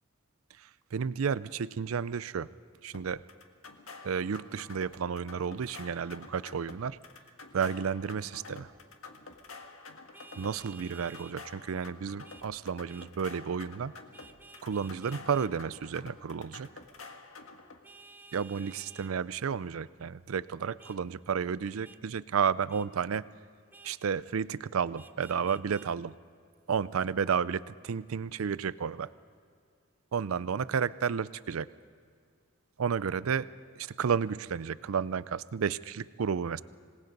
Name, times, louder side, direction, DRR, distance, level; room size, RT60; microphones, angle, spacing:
voice 1, 0.9-2.5 2.8-3.2 4.0-7.0 7.5-8.7 10.4-13.9 14.6-16.7 18.3-23.3 23.8-26.1 26.7-29.1 30.1-31.7 32.8-33.5 33.8-36.6, right 6 dB, 80° right, 17 dB, 0.5 m, -32 dB
sound 1, 2.9-17.8, left 3 dB, 75° left, 1.7 m, -49 dB
Vehicle horn car horn honking, 10.1-11.4 12.2-12.5 12.9-13.1 14.1-15.5 17.8-19.1 20.8-21.0 21.8-22.0 22.7-22.9 23.7-24.0 24.9-25.9, right 3 dB, 10° right, 0.5 m, -53 dB
27.0 x 19.0 x 5.3 m, 2.2 s
head